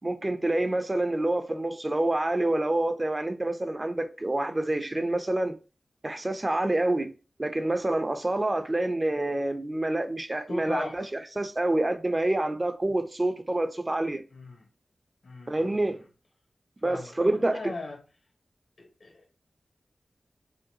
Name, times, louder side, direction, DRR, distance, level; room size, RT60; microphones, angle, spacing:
voice 1, 0.0-5.6 6.0-7.1 7.4-14.2 15.5-16.0 16.8-17.7, right 1 dB, 30° right, 0.6 m, -27 dB
voice 2, 10.5-11.0 14.3-14.7 15.2-16.0 16.8-18.0 18.8-19.4, left 2 dB, 75° left, 1.2 m, -39 dB
5.1 x 2.3 x 2.8 m
wide cardioid pair, 60°, 0 cm